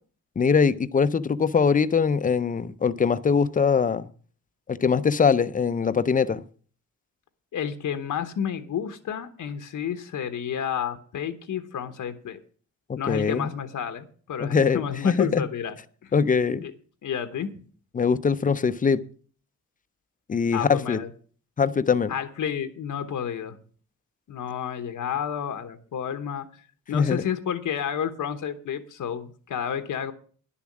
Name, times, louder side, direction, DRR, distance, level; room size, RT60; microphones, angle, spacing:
voice 1, 0.4-4.1 4.7-6.4 12.9-13.5 14.4-15.4 16.1-16.6 17.9-19.0 20.3-21.0 21.6-22.1 26.9-27.2, left 6 dB, 30° left, 0.5 m, -22 dB
voice 2, 7.5-12.4 13.0-15.8 16.0-16.1 16.6-16.7 17.0-17.6 20.5-21.1 22.1-23.6 24.3-26.5 26.9-30.1, left 8 dB, 90° left, 1.1 m, -30 dB
11.0 x 7.1 x 7.3 m
wide cardioid pair, 175°, 30 cm